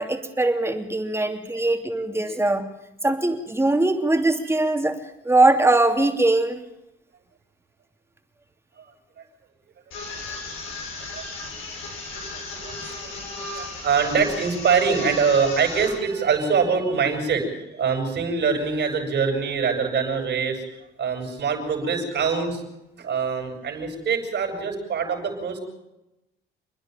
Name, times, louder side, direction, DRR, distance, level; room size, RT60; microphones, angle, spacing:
voice 1, 0.0-2.6 3.0-4.9 5.2-6.6, right 2 dB, 15° right, 4 dB, 2.8 m, -21 dB
sound 1, 9.9-15.9, left 3 dB, 90° left, 7.2 m, -35 dB
voice 2, 10.3-10.6 11.1-11.2 12.1-13.3 13.5-20.6 21.0-22.6 23.0-25.6, right 5 dB, 65° right, 3 dB, 6.0 m, -24 dB
29.0 x 10.5 x 9.1 m, 0.92 s
cardioid pair, 90°, 20 cm